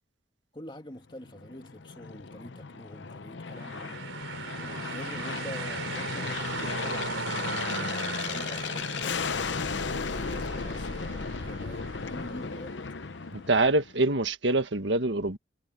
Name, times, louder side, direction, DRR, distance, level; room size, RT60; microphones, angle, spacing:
voice 1, 0.5-4.0 4.6-9.2 9.6-12.9, left 1 dB, 25° left, 2.7 m, -46 dB
Aircraft, 1.2-14.0, left 5 dB, 65° left, 0.7 m, -35 dB
sound 1, 3.5-13.3, right 5 dB, 85° right, 3.7 m, -39 dB
voice 2, 13.3-15.4, right 2 dB, 65° right, 1.7 m, -25 dB
head